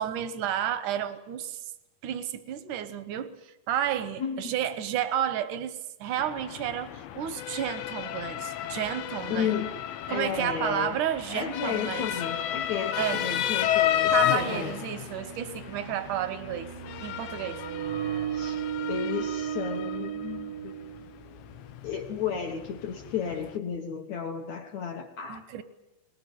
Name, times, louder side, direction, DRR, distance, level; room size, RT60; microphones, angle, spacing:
voice 1, 0.0-1.6 2.0-9.5 10.1-12.1 13.0-13.3 14.1-16.7 17.0-17.7 25.3-25.6, right 10 dB, 70° right, 13 dB, 1.9 m, -31 dB
voice 2, 4.2-4.5 9.3-9.7 10.1-11.0 11.3-14.7 18.3-20.8 21.8-25.4, left 7 dB, 65° left, 4 dB, 1.8 m, -33 dB
Motor vehicle (road) / Siren, 6.2-23.6, left 11 dB, 90° left, 3.3 m, -33 dB
sound 1, 14.6-21.5, right 10 dB, 85° right, 3.4 m, -35 dB
22.5 x 20.0 x 9.3 m, 0.91 s
omnidirectional pair, 4.9 m